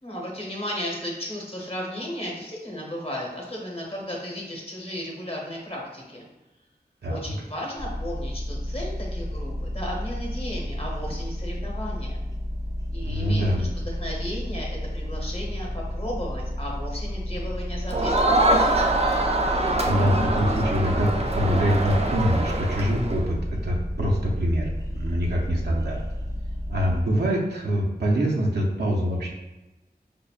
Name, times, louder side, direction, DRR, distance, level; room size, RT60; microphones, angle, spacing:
voice 1, 0.0-6.2 7.1-12.2 12.9-18.5, equal, 35° left, -2 dB, 1.0 m, -35 dB
sound 1, 7.8-27.0, left 1 dB, 20° left, 0.4 m, -31 dB
voice 2, 13.0-13.7 19.8-23.4 23.6-26.0 26.7-29.3, equal, 85° right, -3 dB, 0.6 m, -24 dB
Crowd, 17.9-23.2, right 2 dB, 40° right, 0.4 m, -24 dB
5.1 x 2.1 x 2.3 m, 1.0 s
wide cardioid pair, 55°, 17 cm